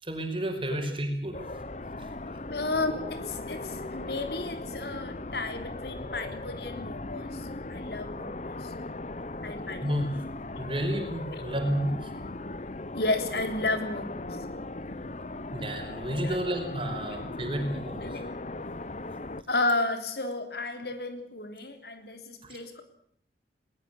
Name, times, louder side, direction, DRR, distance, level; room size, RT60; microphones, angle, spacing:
voice 1, 0.0-1.4 9.8-10.1 10.6-12.1 15.5-18.2 22.4-22.6, equal, 30° right, 5 dB, 5.3 m, -31 dB
sound 1, 1.3-19.4, left 2 dB, 40° left, 0.9 m, -38 dB
voice 2, 2.5-8.7 9.4-9.9 11.3-11.4 12.9-14.3 16.2-16.4 16.9-17.2 18.0-18.3 19.5-22.8, left 2 dB, 65° left, 8 dB, 3.5 m, -33 dB
21.0 x 20.5 x 8.3 m, 0.64 s
head